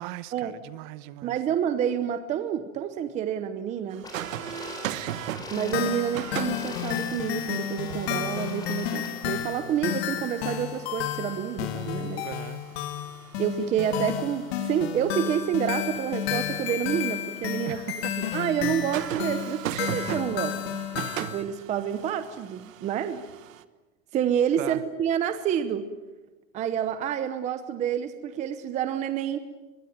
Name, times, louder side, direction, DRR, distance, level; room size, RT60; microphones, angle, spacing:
voice 1, 0.0-1.4 12.2-12.6 17.6-18.3 24.6-24.8, right 15 dB, 35° right, 15 dB, 1.1 m, -38 dB
voice 2, 1.2-4.1 5.5-12.3 13.4-17.8 18.3-20.7 21.2-23.3 24.1-25.9 26.5-29.4, right 9 dB, 20° right, 11 dB, 0.9 m, -28 dB
sound 1, 3.9-23.6, right 11 dB, 75° right, 1.5 m, -40 dB
sound 2, 4.0-9.1, left 2 dB, 10° left, 4.6 m, -42 dB
sound 3, 5.5-21.4, left 11 dB, 50° left, 2.6 m, -32 dB
24.5 x 22.5 x 9.3 m, 1.1 s
supercardioid pair, 165°, 40 cm